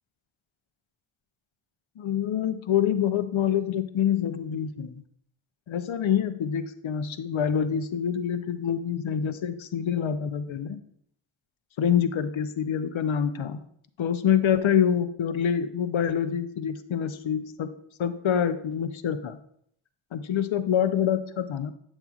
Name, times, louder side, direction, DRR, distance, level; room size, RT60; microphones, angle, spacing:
voice 1, 2.0-5.0 5.7-10.8 11.8-13.6 14.0-17.7 18.0-19.4 20.1-21.7, left 8 dB, 70° left, 11 dB, 0.6 m, -26 dB
8.0 x 7.3 x 2.4 m, 0.68 s
wide cardioid pair, 60°, 50 cm